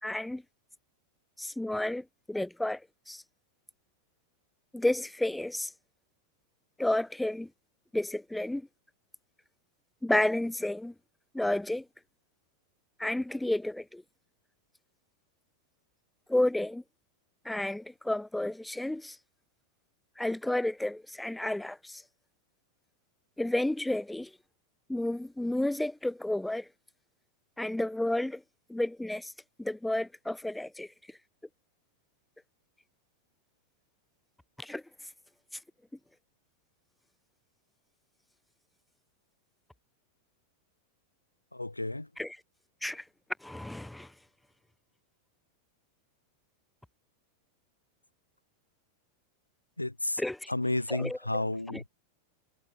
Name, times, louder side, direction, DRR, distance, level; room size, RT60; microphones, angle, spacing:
voice 1, 0.0-0.4 1.4-3.2 4.7-5.7 6.8-7.5 7.9-8.7 10.0-10.9 11.3-11.8 13.0-14.0 16.3-16.8 17.4-19.2 20.2-22.0 23.4-24.3 24.9-26.7 27.6-28.4 28.7-29.3 29.6-30.9 34.6-34.8 42.2-42.4 42.8-43.0 43.4-44.1 50.2-50.5 50.9-51.8, left 1 dB, 5° left, 4.6 m, -31 dB
voice 2, 41.5-42.1 49.8-50.2 50.5-51.9, left 2 dB, 85° left, 7.7 m, -32 dB
figure-of-eight pair, 90°, 0 cm